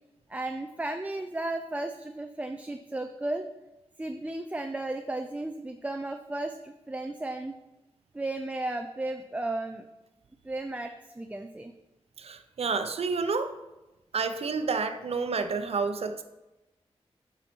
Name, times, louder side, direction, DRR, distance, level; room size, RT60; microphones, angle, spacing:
voice 1, 0.3-3.4 4.0-7.5 8.1-9.9 10.4-11.7, right 2 dB, 15° right, 5 dB, 0.4 m, -34 dB
voice 2, 12.2-13.5 14.1-16.2, right 4 dB, 65° right, 8 dB, 0.8 m, -29 dB
9.5 x 5.7 x 4.5 m, 1.0 s
wide cardioid pair, 115°, 11 cm